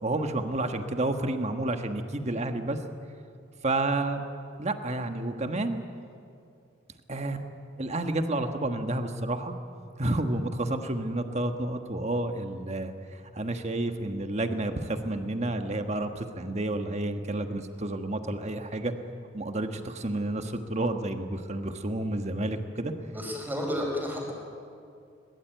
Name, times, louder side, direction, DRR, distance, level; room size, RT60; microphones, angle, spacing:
voice 1, 0.0-2.8 3.6-4.2 4.6-5.8 7.1-7.5 7.8-9.5 10.0-12.9 13.3-18.9 19.3-22.9, right 2 dB, 35° right, 7 dB, 1.4 m, -30 dB
voice 2, 23.1-24.3, left 1 dB, 10° right, -1 dB, 4.8 m, -31 dB
21.5 x 20.0 x 9.2 m, 2.5 s
head